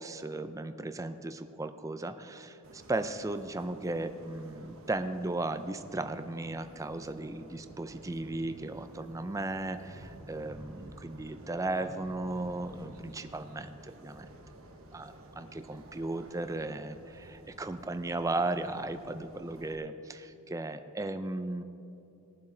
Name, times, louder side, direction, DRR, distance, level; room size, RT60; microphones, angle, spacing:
voice 1, 0.0-14.3 14.9-21.6, right 2 dB, 15° right, 9 dB, 0.4 m, -36 dB
sound 1, 2.6-19.8, right 1 dB, 65° right, 1.1 m, -52 dB
20.0 x 7.4 x 3.8 m, 2.8 s
head